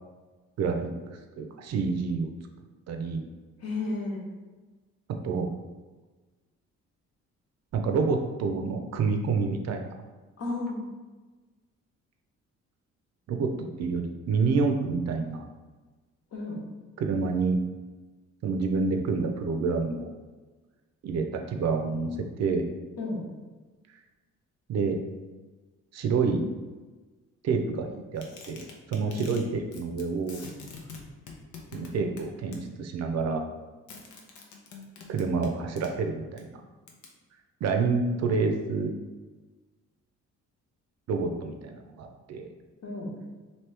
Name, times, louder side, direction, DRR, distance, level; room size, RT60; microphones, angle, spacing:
voice 1, 1.1-2.3 2.9-3.3 5.2-5.5 7.7-9.9 13.3-13.5 13.8-15.4 17.0-17.6 18.4-20.1 21.0-22.1 22.4-22.6 24.7-25.0 25.9-26.4 27.4-27.9 28.1-30.4 31.7-33.4 35.1-36.5 37.6-38.9 41.1-42.5, right 4 dB, 60° right, 4 dB, 0.6 m, -28 dB
voice 2, 3.6-4.2 10.4-10.8 16.3-16.6 23.0-23.2 29.1-29.3 42.8-43.1, left 2 dB, 55° left, -3 dB, 1.1 m, -32 dB
sound 1, 28.2-29.4 29.7-30.0 30.3-32.6 33.9-35.9 36.4-36.5 36.9-37.1, left 5 dB, 75° left, 0.7 m, -45 dB
3.0 x 2.8 x 3.3 m, 1.3 s
cardioid pair, 90°, 30 cm